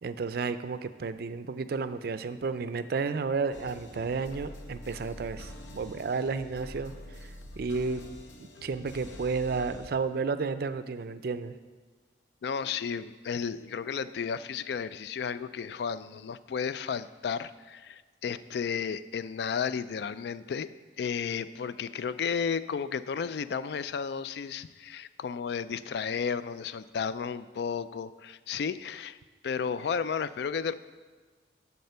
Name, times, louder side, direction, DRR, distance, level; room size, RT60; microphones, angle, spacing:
voice 1, 0.0-6.9 7.2-7.3 7.6-8.0 8.4-11.5, right 4 dB, 55° right, 12 dB, 0.4 m, -32 dB
sound 1, 3.5-9.9, left 1 dB, 75° left, 0.9 m, -45 dB
voice 2, 12.4-20.7 21.0-29.2 29.4-30.7, left 6 dB, 60° left, 15 dB, 0.3 m, -33 dB
11.0 x 4.2 x 6.8 m, 1.4 s
head